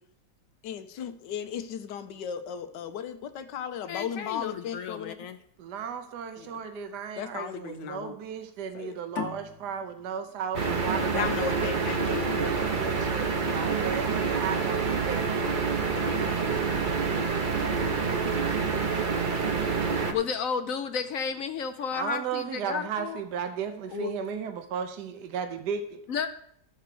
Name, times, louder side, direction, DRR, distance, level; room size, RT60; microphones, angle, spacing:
voice 1, 0.6-5.2 6.4-6.5 7.2-8.2 8.7-9.0 11.1-12.3, left 8 dB, 85° left, 9 dB, 1.4 m, -35 dB
voice 2, 3.9-5.4 20.1-23.2 23.9-24.1 26.1-26.3, left 6 dB, 60° left, 9 dB, 0.9 m, -32 dB
voice 3, 5.6-15.6 21.9-26.0, right 7 dB, 70° right, 8 dB, 1.4 m, -35 dB
sound 1, 9.1-12.3, left 6 dB, 45° left, 1.3 m, -40 dB
sound 2, 10.5-20.1, right 4 dB, 40° right, 0.8 m, -27 dB
13.5 x 4.6 x 6.8 m, 0.69 s
omnidirectional pair, 1.9 m